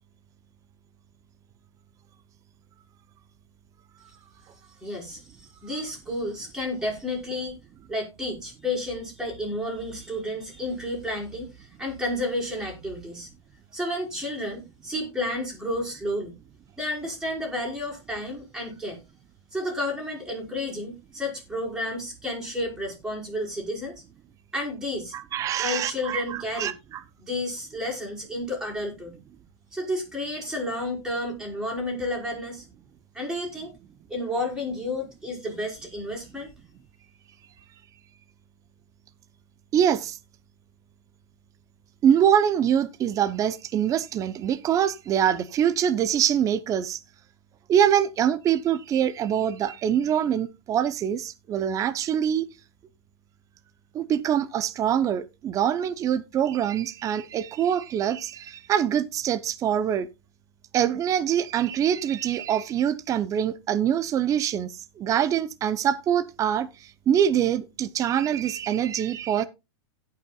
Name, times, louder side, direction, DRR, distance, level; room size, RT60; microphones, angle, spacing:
voice 1, 4.8-5.2 5.6-7.6 7.9-13.3 13.7-16.3 16.8-19.0 19.5-24.0 24.5-25.1 25.6-26.7 27.2-29.2 29.7-32.7 33.1-33.7 34.1-36.5, left 1 dB, 5° right, 5.1 m, -31 dB
voice 2, 25.1-27.0 39.7-40.2 42.0-47.0 47.7-52.4 53.9-60.1 60.7-69.4, right 9 dB, 25° right, 0.7 m, -24 dB
17.0 x 5.8 x 2.3 m
hypercardioid pair, 140°, 15 cm